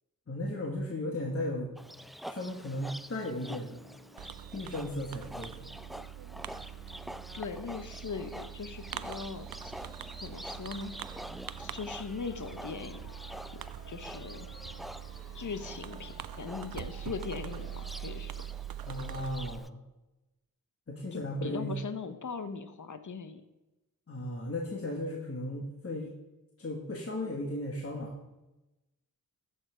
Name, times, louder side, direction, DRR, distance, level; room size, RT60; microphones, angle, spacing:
voice 1, 0.3-1.7 2.3-3.9 4.5-5.7 18.8-19.8 20.9-21.8 24.1-26.1 26.6-28.2, left 1 dB, 40° left, 0 dB, 1.5 m, -36 dB
Livestock farm animals working animals, 1.8-19.7, equal, ahead, 0.3 m, -47 dB
sound 1, 3.4-18.2, left 1 dB, 85° left, 1.7 m, -57 dB
Fireworks, 4.2-19.6, right 11 dB, 80° right, 0.5 m, -43 dB
voice 2, 7.3-9.8 10.2-10.9 11.6-13.1 13.5-13.6 13.9-14.5 15.3-18.4 21.1-23.4, left 5 dB, 60° left, 10 dB, 0.9 m, -40 dB
14.0 x 5.6 x 5.0 m, 1.0 s
wide cardioid pair, 70°, 35 cm